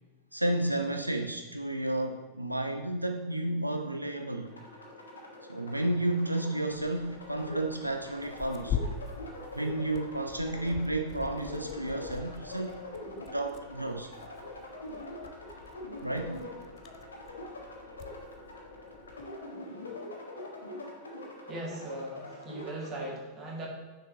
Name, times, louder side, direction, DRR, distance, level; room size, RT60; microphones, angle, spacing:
voice 1, 0.3-4.5 5.5-8.8 9.5-12.8 13.2-14.1 16.0-16.4, right 1 dB, 85° right, 5 dB, 0.3 m, -32 dB
sound 1, 4.4-23.1, left 1 dB, 75° left, 1.1 m, -44 dB
Tearing, 6.7-19.3, left 7 dB, 35° left, 0.4 m, -43 dB
voice 2, 21.5-23.7, right 1 dB, 30° right, -2 dB, 1.7 m, -39 dB
6.2 x 4.6 x 3.8 m, 1.3 s
figure-of-eight pair, 90°, 0 cm